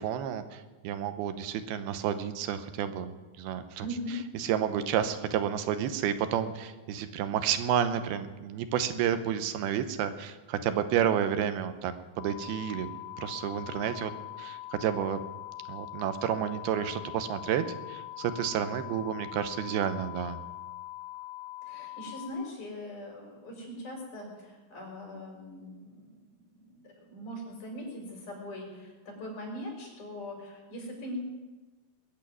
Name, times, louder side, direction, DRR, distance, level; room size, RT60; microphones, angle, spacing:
voice 1, 0.0-3.9 4.4-12.9 13.2-14.1 14.4-15.2 15.7-20.4, right 9 dB, 90° right, 10 dB, 2.9 m, -30 dB
voice 2, 3.8-4.2 21.6-31.2, equal, 55° left, 0 dB, 5.7 m, -41 dB
sound 1, 12.2-22.3, left 17 dB, 80° left, 3.4 m, -42 dB
21.0 x 7.2 x 9.3 m, 1.2 s
omnidirectional pair, 4.3 m